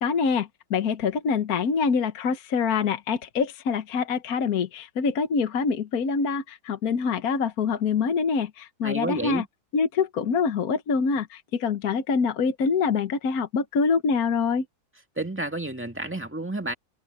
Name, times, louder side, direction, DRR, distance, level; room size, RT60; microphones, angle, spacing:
voice 1, 0.0-9.4 9.7-14.6, left 5 dB, 65° left, 1.6 m, -25 dB
voice 2, 8.8-9.5 15.2-16.7, right 2 dB, 5° right, 2.1 m, -30 dB
omnidirectional pair, 1.8 m